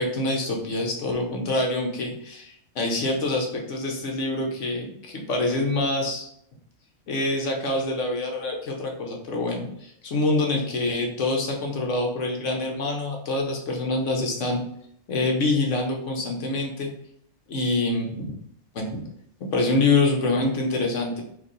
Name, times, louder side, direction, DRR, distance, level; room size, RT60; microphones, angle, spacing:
voice 1, 0.0-6.3 7.1-14.6 15.1-16.9 17.5-18.3 18.7-19.0 19.4-21.2, left 2 dB, 65° left, 1 dB, 1.1 m, -26 dB
4.6 x 2.6 x 3.9 m, 0.70 s
omnidirectional pair, 1.4 m